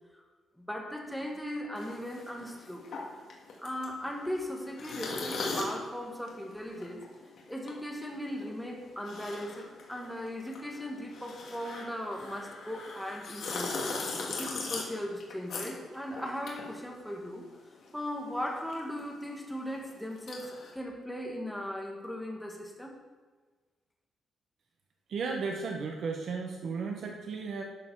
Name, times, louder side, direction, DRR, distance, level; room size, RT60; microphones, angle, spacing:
voice 1, 0.6-2.9 3.6-7.1 7.5-13.8 14.2-17.5 17.9-22.9, equal, ahead, 1 dB, 1.3 m, -38 dB
sound 1, 1.7-17.6 17.8-20.7, left 3 dB, 60° left, 1.9 m, -40 dB
voice 2, 25.1-27.6, right 4 dB, 55° right, 2 dB, 0.9 m, -34 dB
12.0 x 6.8 x 4.6 m, 1.4 s
cardioid pair, 170°, 0 cm